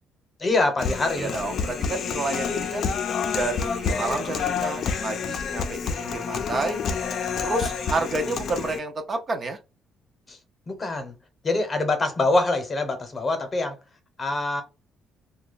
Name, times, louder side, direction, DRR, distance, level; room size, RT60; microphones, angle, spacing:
voice 1, 0.4-1.3 10.3-10.4 10.7-11.1 11.4-13.7 14.2-14.6, left 2 dB, 25° left, 0.9 m, -24 dB
Human voice, 0.8-8.8, left 6 dB, 50° left, 0.5 m, -28 dB
voice 2, 1.2-2.9 3.3-6.8 7.4-9.6, right 3 dB, 30° right, 0.5 m, -30 dB
2.9 x 2.2 x 3.9 m
cardioid pair, 135°, 0 cm